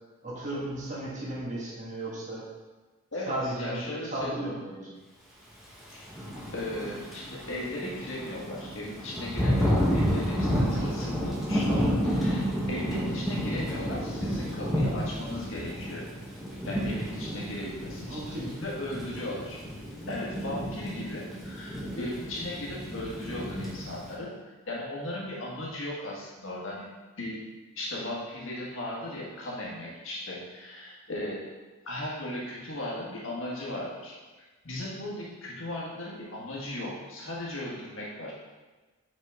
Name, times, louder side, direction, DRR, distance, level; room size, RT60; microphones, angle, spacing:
voice 1, 0.2-2.4 3.3-4.9 12.5-12.7 18.1-18.7, right 1 dB, 35° right, -5 dB, 1.6 m, -35 dB
voice 2, 3.1-4.4 5.9-6.0 6.5-16.0 16.6-18.3 18.6-19.6 20.1-26.8 27.2-27.4 27.7-31.5 31.8-34.2 34.6-38.3, left 1 dB, 65° left, -4 dB, 1.7 m, -37 dB
Thunder / Rain, 6.0-24.1, equal, ahead, 1.1 m, -31 dB
5.5 x 5.0 x 3.7 m, 1.2 s
head